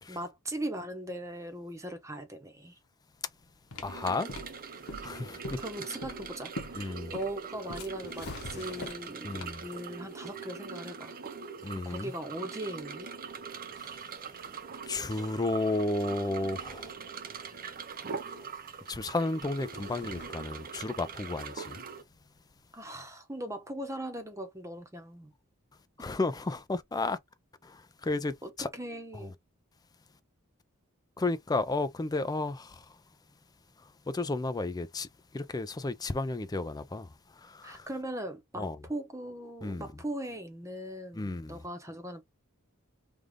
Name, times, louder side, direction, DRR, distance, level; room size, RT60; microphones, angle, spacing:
voice 1, 0.1-2.8 5.6-11.1 11.8-13.1 22.7-25.3 28.4-29.3 37.6-42.2, right 1 dB, 15° right, 0.9 m, -39 dB
sound 1, 3.4-9.8, left 1 dB, 75° left, 1.0 m, -44 dB
voice 2, 3.8-4.4 5.0-5.6 6.7-7.1 9.2-9.6 11.6-12.1 13.8-14.4 14.9-16.9 18.2-18.4 18.9-21.8 26.0-27.2 27.6-28.7 29.1-29.3 31.2-33.0 33.8-37.9 38.6-38.8 39.6-39.9 41.1-41.6, left 2 dB, 20° left, 0.4 m, -33 dB
sound 2, 3.8-22.0, right 6 dB, 40° right, 0.7 m, -42 dB
sound 3, 7.9-9.2 12.6-22.7, left 3 dB, 50° left, 0.7 m, -52 dB
3.3 x 2.4 x 3.6 m
head